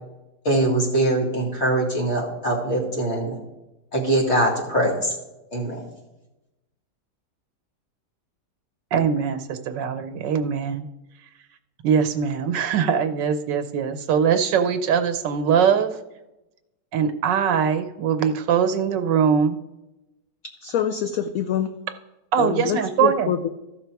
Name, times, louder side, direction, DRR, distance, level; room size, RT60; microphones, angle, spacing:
voice 1, 0.4-3.4 3.9-5.1 5.5-5.8, right 1 dB, 40° left, -2 dB, 2.5 m, -22 dB
voice 2, 8.9-10.8 11.8-15.9 16.9-19.6 22.3-23.3, right 7 dB, 80° right, 9 dB, 1.4 m, -22 dB
voice 3, 20.4-21.8 22.4-23.5, left 9 dB, 70° left, 9 dB, 0.8 m, -26 dB
14.5 x 6.2 x 4.6 m, 0.98 s
omnidirectional pair, 1.9 m